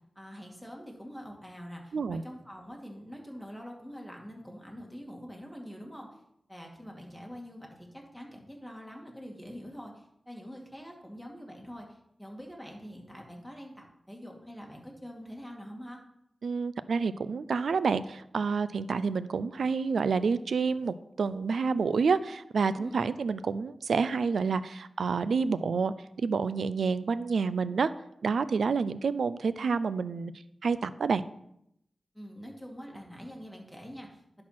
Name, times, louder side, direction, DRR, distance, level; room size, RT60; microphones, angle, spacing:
voice 1, 0.2-6.2 6.5-16.0 22.8-23.0 32.1-34.4, equal, ahead, 0 dB, 2.3 m, -45 dB
voice 2, 16.4-27.9 28.2-30.3 30.6-31.2, right 5 dB, 90° right, 15 dB, 0.3 m, -28 dB
10.5 x 4.3 x 5.9 m, 0.76 s
cardioid pair, 60°, 0 cm